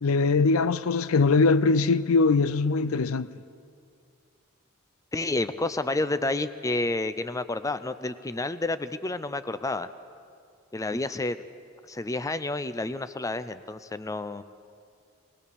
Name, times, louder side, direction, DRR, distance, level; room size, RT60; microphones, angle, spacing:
voice 1, 0.0-3.3, left 4 dB, 75° left, 0.5 m, -22 dB
voice 2, 5.1-9.9 10.7-11.4 11.9-14.4, left 2 dB, 15° left, 0.5 m, -30 dB
20.5 x 19.0 x 7.0 m
head